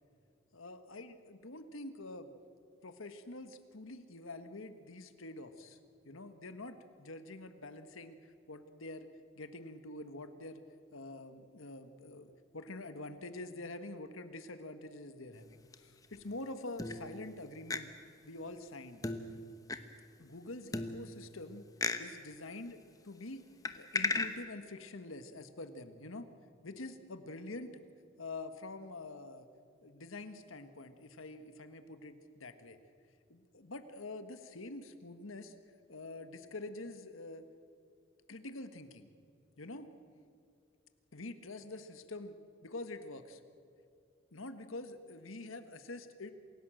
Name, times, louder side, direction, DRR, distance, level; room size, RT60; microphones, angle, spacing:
voice 1, 0.5-2.3 2.8-5.8 6.0-9.1 9.4-10.6 10.9-17.9 18.2-19.0 20.2-21.6 22.0-23.4 23.8-26.3 26.6-27.8 28.2-29.5 29.8-32.8 33.3-35.5 35.9-37.4 38.3-39.1 39.6-39.9 41.1-42.4 42.6-43.4 44.3-46.3, left 2 dB, 80° left, 9 dB, 1.5 m, -46 dB
sound 1, 15.3-16.2 16.8-17.4 17.7-17.8 19.0-19.8 20.7-21.4 21.8-22.0 23.6-24.3, left 3 dB, 15° left, 1.0 m, -36 dB
27.5 x 16.5 x 7.8 m, 2.5 s
head